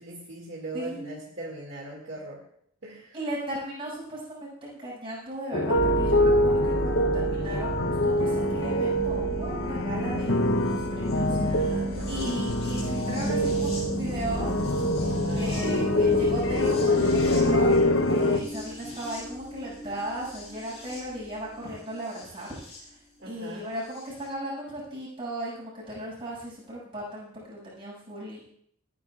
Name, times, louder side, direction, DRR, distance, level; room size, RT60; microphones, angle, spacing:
voice 1, 0.0-2.4 2.8-3.2 11.1-12.4 15.2-16.3 23.2-23.7, right 2 dB, 55° right, -2 dB, 2.2 m, -40 dB
voice 2, 0.7-1.2 3.1-11.7 12.1-14.5 15.4-17.7 18.1-22.6 23.2-28.5, right 1 dB, 25° right, -7 dB, 6.4 m, -36 dB
sound 1, 5.5-18.4, left 1 dB, 60° left, 0.8 m, -25 dB
sound 2, 5.7-22.8 24.0-24.1, equal, 30° left, 5.1 m, -34 dB
29.0 x 9.8 x 2.4 m, 0.67 s
head